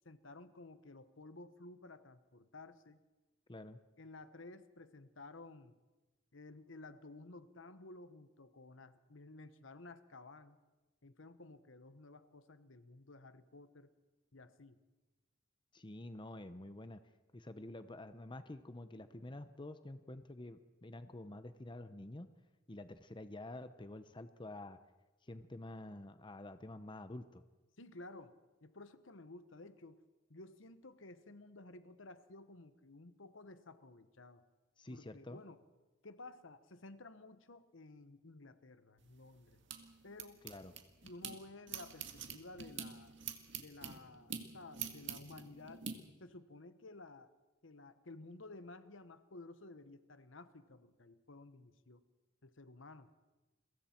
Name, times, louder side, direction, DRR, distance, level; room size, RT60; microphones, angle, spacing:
voice 1, 0.0-3.0 4.0-5.8 6.3-10.6 11.0-13.9 14.3-14.8 27.8-30.0 30.3-34.4 34.9-35.6 36.0-39.6 40.0-40.4 41.0-43.2 43.5-45.8 46.2-47.3 47.6-52.0 52.4-53.1, left 2 dB, 75° left, 11 dB, 1.2 m, -54 dB
voice 2, 15.7-17.0 17.3-22.3 22.7-24.8 25.2-27.4 34.8-35.4 40.4-40.7, left 1 dB, 25° left, 10 dB, 0.8 m, -48 dB
sound 1, 39.0-41.3 41.7-45.9, right 7 dB, 65° right, 2.0 m, -46 dB
30.0 x 23.0 x 4.5 m, 1.2 s
head